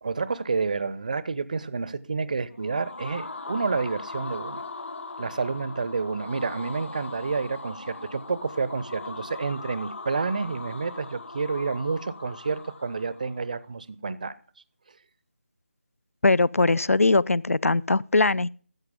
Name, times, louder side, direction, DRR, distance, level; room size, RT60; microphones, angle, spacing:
voice 1, 0.0-4.6 5.2-14.3, right 4 dB, 35° right, 0.5 m, -29 dB
sound 1, 2.5-13.4, left 3 dB, 60° left, 1.5 m, -40 dB
voice 2, 16.2-18.5, left 3 dB, 80° left, 0.4 m, -21 dB
13.5 x 7.9 x 3.6 m
figure-of-eight pair, 160°, 8 cm